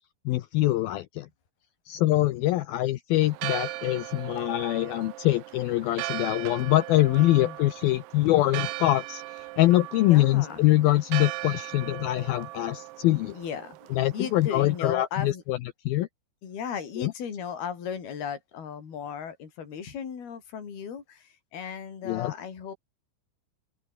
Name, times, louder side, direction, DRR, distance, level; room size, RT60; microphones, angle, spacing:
voice 1, 0.3-1.3 1.9-9.2 9.6-13.3 14.0-15.6 15.9-16.1 17.0-17.1 22.1-22.3, left 16 dB, 80° left, 2.2 m, -24 dB
Church bell, 3.2-14.8, right 20 dB, 80° right, 2.5 m, -38 dB
voice 2, 7.2-7.6 10.1-10.7 12.0-12.1 13.3-15.4 16.4-22.8, left 7 dB, 60° left, 6.2 m, -36 dB
open air
omnidirectional pair, 5.2 m